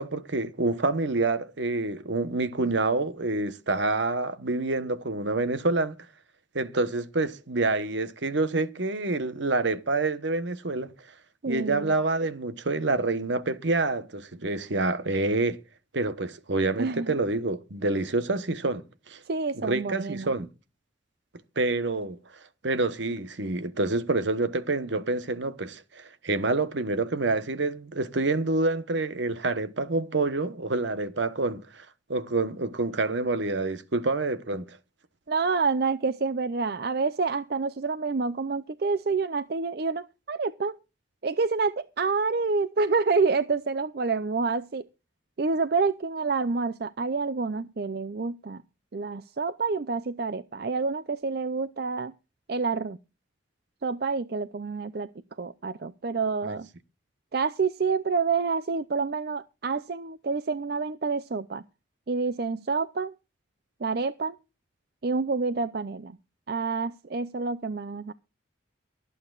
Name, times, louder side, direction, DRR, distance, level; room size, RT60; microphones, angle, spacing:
voice 1, 0.0-6.0 6.5-10.9 11.5-15.6 15.9-19.2 19.6-20.5 21.6-22.2 22.6-31.8 32.1-34.6 56.5-56.6, right 2 dB, 70° right, 1.1 m, -27 dB
voice 2, 11.4-12.0 16.8-17.2 19.3-20.3 35.3-40.8 41.2-44.8 45.4-48.6 48.9-52.1 52.5-53.0 53.8-55.1 55.4-56.7 57.3-61.6 62.1-63.1 63.8-64.4 65.0-66.2 66.5-68.1, right 4 dB, 55° right, 0.5 m, -28 dB
23.5 x 8.6 x 2.4 m
head